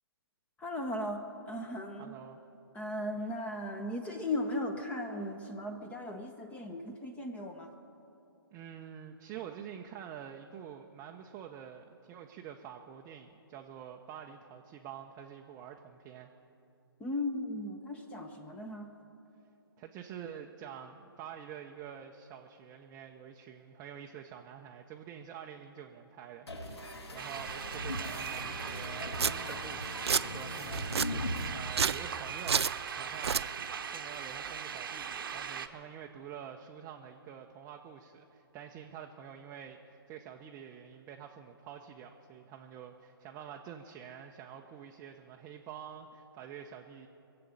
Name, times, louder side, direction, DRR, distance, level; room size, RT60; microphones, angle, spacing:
voice 1, 0.6-2.1 2.7-7.7 17.0-18.9, left 1 dB, 10° left, 5 dB, 0.8 m, -37 dB
voice 2, 2.0-2.4 8.5-16.3 19.8-32.7 33.0-33.6 33.9-47.1, right 8 dB, 20° right, 2 dB, 0.6 m, -47 dB
sound 1, 26.5-31.5, left 1 dB, 80° left, 1.8 m, -40 dB
sound 2, 27.2-35.7, right 7 dB, 55° right, 0.9 m, -40 dB
Domestic sounds home sounds, 28.8-28.9 29.2-29.3 29.8-30.2 30.7-31.1 31.7-32.0 32.5-32.7 33.1-33.4, right 6 dB, 80° right, 0.4 m, -29 dB
22.0 x 7.7 x 8.4 m, 2.8 s
figure-of-eight pair, 140°, 13 cm